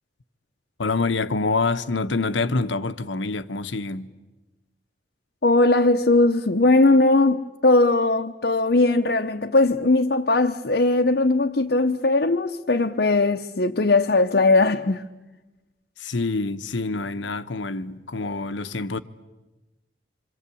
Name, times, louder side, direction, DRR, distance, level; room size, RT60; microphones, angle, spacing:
voice 1, 0.8-4.1 16.0-19.0, left 3 dB, 90° left, 1.1 m, -26 dB
voice 2, 5.4-15.1, left 2 dB, 60° left, 0.8 m, -19 dB
26.5 x 26.5 x 8.5 m
head